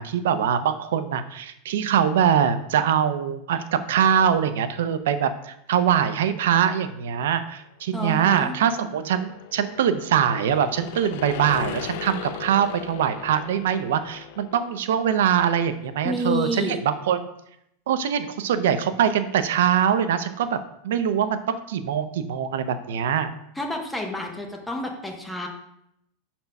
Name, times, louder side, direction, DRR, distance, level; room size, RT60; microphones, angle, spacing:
voice 1, 0.0-17.3 17.9-23.3, right 8 dB, 80° right, 11 dB, 0.6 m, -23 dB
sound 1, 7.9-14.9, left 11 dB, 55° left, 0.4 m, -38 dB
voice 2, 7.9-8.5 16.0-16.8 23.6-25.5, left 1 dB, 5° left, 1 dB, 0.8 m, -29 dB
5.8 x 4.3 x 5.3 m, 0.78 s
supercardioid pair, 175°, 0 cm